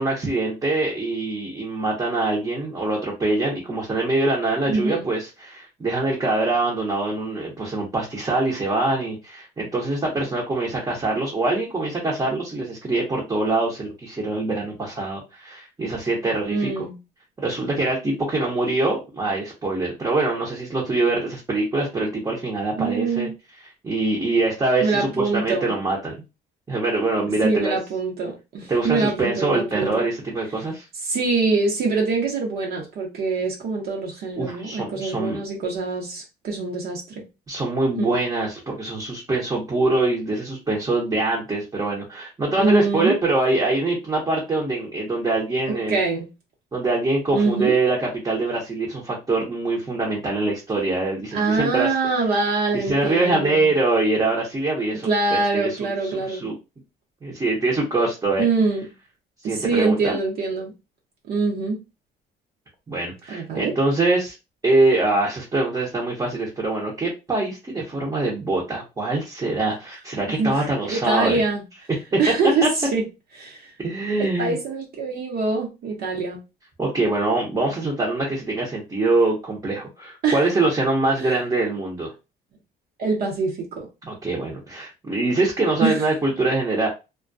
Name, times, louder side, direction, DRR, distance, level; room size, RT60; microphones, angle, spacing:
voice 1, 0.0-16.9 17.4-23.3 23.8-26.2 26.7-27.8 28.7-30.8 34.4-35.4 37.5-46.0 46.7-51.9 52.7-56.5 57.2-58.5 59.4-60.2 62.9-64.3 64.6-71.4 72.1-72.2 72.6-72.7 73.8-74.6 76.8-82.1 84.1-86.9, right 2 dB, 20° right, 0.7 m, -24 dB
voice 2, 4.7-5.0 16.4-17.0 22.8-23.3 24.8-25.7 27.4-30.0 31.0-37.2 38.0-38.1 42.6-43.2 45.9-46.3 47.3-47.7 51.3-53.7 55.0-56.5 58.4-58.9 59.4-60.7 61.3-61.8 63.3-63.7 70.4-71.6 72.2-73.0 73.4-73.7 74.2-76.4 80.2-80.4 81.2-81.4 83.0-83.9 85.8-86.0, right 4 dB, 65° right, 0.8 m, -24 dB
2.3 x 2.2 x 2.5 m
cardioid pair, 110°, 17 cm